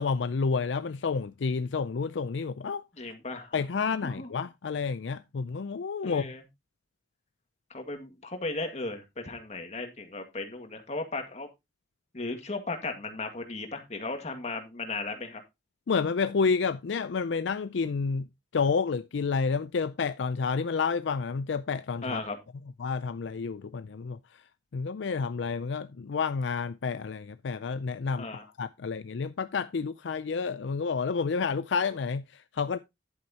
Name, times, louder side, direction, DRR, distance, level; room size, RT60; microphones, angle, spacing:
voice 1, 0.0-2.8 3.5-6.3 15.9-18.3 18.5-22.2 22.8-24.2 24.7-28.3 28.6-32.8, left 5 dB, 70° left, 0.5 m, -30 dB
voice 2, 3.0-4.3 6.0-6.4 7.7-11.5 12.1-15.4 22.0-22.4 28.2-28.4, left 3 dB, 35° left, 2.0 m, -36 dB
11.0 x 8.6 x 2.9 m
head